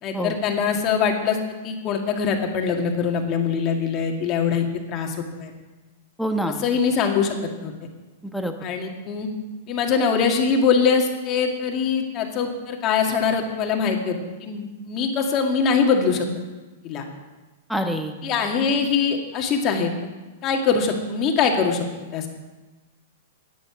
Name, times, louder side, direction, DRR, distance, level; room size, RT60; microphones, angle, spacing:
voice 1, 0.0-1.4 1.6-5.5 6.6-7.7 8.6-9.3 9.7-16.3 16.8-17.0 18.2-19.9 20.4-21.8 22.1-22.3, left 6 dB, 35° left, 3 dB, 2.0 m, -23 dB
voice 2, 6.2-6.6 8.3-8.5 17.7-18.1, equal, ahead, 4 dB, 1.1 m, -25 dB
11.0 x 9.5 x 7.2 m, 1.2 s
hypercardioid pair, 140°, 0 cm